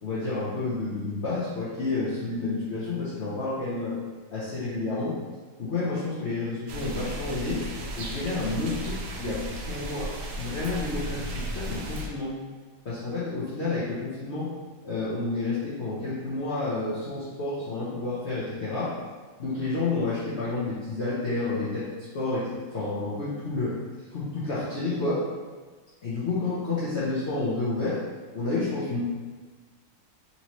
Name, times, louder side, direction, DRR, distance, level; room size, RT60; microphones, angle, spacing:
voice 1, 0.0-4.0 4.3-5.2 5.6-7.6 8.0-10.1 10.4-12.3 12.8-14.5 14.8-19.0 19.4-21.9 22.1-23.8 24.1-25.2 26.0-28.0 28.3-29.0, left 3 dB, 75° left, -10 dB, 0.6 m, -30 dB
sound 1, 6.7-12.1, right 1 dB, 75° right, 1.3 m, -35 dB
4.2 x 2.8 x 3.0 m, 1.4 s
omnidirectional pair, 2.1 m